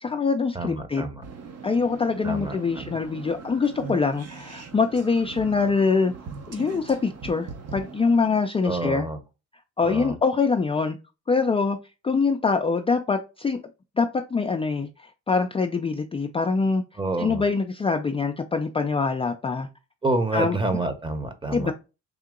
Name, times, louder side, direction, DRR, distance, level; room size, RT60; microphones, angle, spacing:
voice 1, 0.0-1.0 1.6-6.1 6.5-9.1 9.8-11.0 11.3-11.8 12.0-13.6 14.0-16.8 17.2-19.7 20.3-20.6 21.5-21.7, left 4 dB, 20° left, 0.4 m, -24 dB
voice 2, 0.5-1.2 2.2-3.0 8.6-9.2 9.8-10.2 17.0-17.4 20.0-21.7, right 2 dB, 15° right, 0.9 m, -28 dB
sound 1, 1.2-8.3, right 5 dB, 55° right, 1.0 m, -41 dB
3.7 x 2.8 x 3.6 m
cardioid pair, 90°, 30 cm